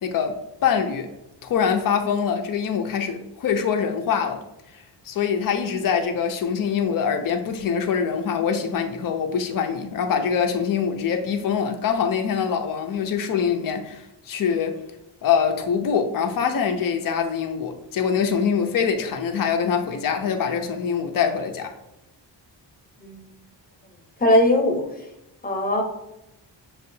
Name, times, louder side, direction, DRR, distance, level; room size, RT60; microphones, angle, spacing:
voice 1, 0.0-1.1 1.4-4.4 4.7-14.8 15.2-21.7, left 7 dB, 50° left, 0.6 m, -24 dB
voice 2, 24.2-24.8 25.4-25.8, left 1 dB, 20° left, 0.9 m, -19 dB
6.5 x 2.4 x 2.6 m
wide cardioid pair, 135°, 44 cm